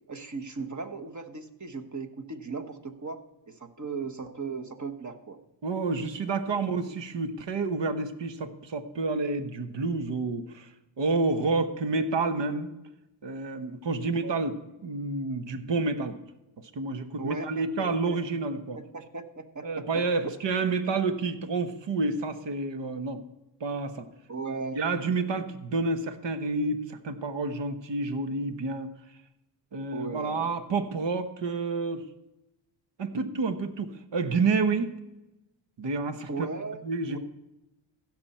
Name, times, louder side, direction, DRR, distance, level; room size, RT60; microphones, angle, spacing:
voice 1, 0.1-3.2 3.5-5.4 6.2-6.5 14.2-14.3 17.2-20.3 24.3-24.8 29.9-30.6 36.3-37.2, right 4 dB, 35° right, 5 dB, 1.3 m, -38 dB
voice 2, 5.6-10.7 11.0-12.7 13.2-14.5 14.8-16.2 16.7-18.8 19.6-23.2 23.6-24.1 24.7-28.9 29.7-32.0 33.0-34.9 35.8-36.3 36.8-37.2, right 3 dB, 60° right, 9 dB, 1.2 m, -29 dB
15.5 x 6.1 x 4.3 m, 0.96 s
cardioid pair, 60°, 49 cm